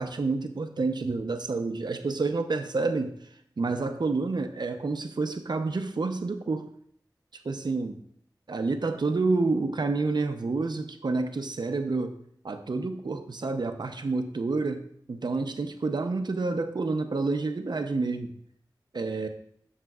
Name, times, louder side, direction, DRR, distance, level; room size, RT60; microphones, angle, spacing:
voice 1, 0.0-3.1 3.6-6.7 7.3-8.0 8.5-12.2 12.4-14.8 15.1-18.3 18.9-19.3, right 3 dB, 65° right, 7 dB, 0.7 m, -29 dB
13.5 x 6.5 x 2.4 m, 0.64 s
wide cardioid pair, 65°, 8 cm